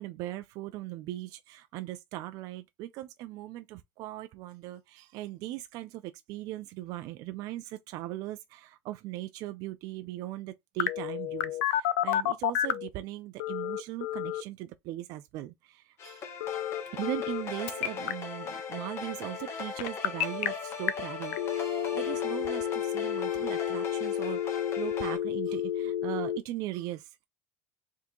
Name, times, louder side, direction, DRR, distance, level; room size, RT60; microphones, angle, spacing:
voice 1, 0.0-16.3 16.9-27.2, right 15 dB, 60° right, 0.4 m, -39 dB
Telephone, 10.8-12.9 13.4-14.4 16.4-17.4 17.7-18.1 19.8-20.5 20.9-21.0 21.3-26.4, left 11 dB, 85° left, 0.5 m, -30 dB
sound 1, 16.0-25.2, left 6 dB, 40° left, 1.2 m, -39 dB
3.6 x 2.7 x 3.7 m
supercardioid pair, 125°, 7 cm